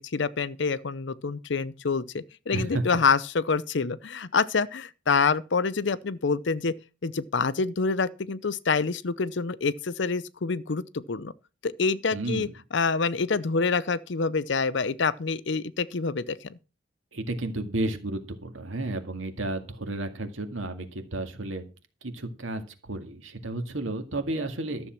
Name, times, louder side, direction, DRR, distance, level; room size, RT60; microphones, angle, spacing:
voice 1, 0.0-6.7 7.0-11.3 11.6-16.6, left 4 dB, 60° left, 0.6 m, -27 dB
voice 2, 2.5-2.8 12.1-12.5 17.1-21.7 22.0-24.9, right 2 dB, 80° right, 2.1 m, -32 dB
13.0 x 7.1 x 5.9 m
head